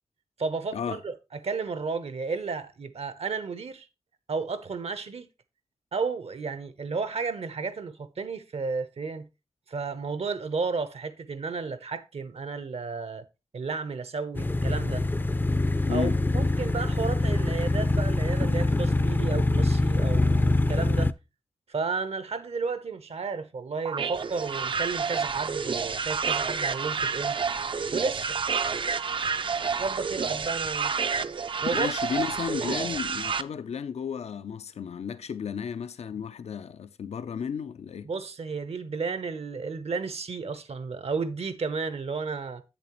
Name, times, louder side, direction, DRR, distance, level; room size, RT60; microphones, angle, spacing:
voice 1, 0.4-3.9 4.3-5.3 5.9-9.3 9.7-13.2 13.5-15.0 15.9-21.1 21.7-27.4 27.9-28.4 29.8-30.9 31.6-31.9 32.6-32.8 38.0-42.6, right 4 dB, 70° right, 0.8 m, -32 dB
Road Work, 14.3-21.1, left 2 dB, 20° left, 0.3 m, -24 dB
voice 2, 15.8-16.2 31.7-38.1, left 7 dB, 90° left, 0.4 m, -33 dB
sound 1, 23.9-33.4, right 5 dB, 50° right, 0.4 m, -29 dB
7.7 x 7.1 x 3.0 m
wide cardioid pair, 65°, 11 cm